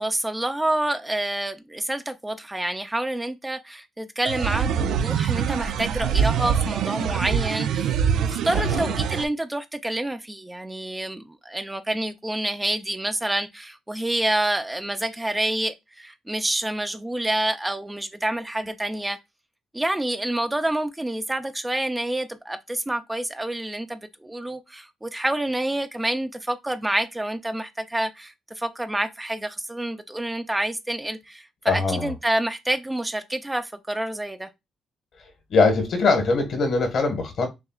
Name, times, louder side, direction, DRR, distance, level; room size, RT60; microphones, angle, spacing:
voice 1, 0.0-19.2 19.7-34.5, right 1 dB, 10° right, 0.5 m, -28 dB
sound 1, 4.3-9.3, right 8 dB, 80° right, 0.4 m, -24 dB
voice 2, 8.5-8.9 31.7-32.1 35.5-37.5, left 3 dB, 65° left, 1.5 m, -22 dB
6.4 x 2.3 x 2.4 m
cardioid pair, 90°, 0 cm